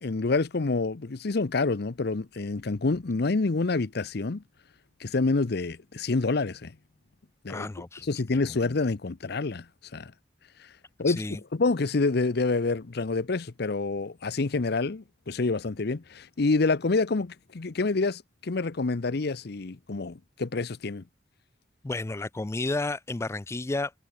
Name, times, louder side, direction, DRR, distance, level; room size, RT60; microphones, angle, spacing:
voice 1, 0.0-4.4 5.0-6.7 7.4-7.7 8.1-9.6 9.9-10.1 11.0-11.2 11.5-21.0, left 3 dB, 60° left, 0.7 m, -27 dB
voice 2, 7.5-8.1 11.1-11.4 21.8-23.9, left 2 dB, 15° left, 0.4 m, -31 dB
head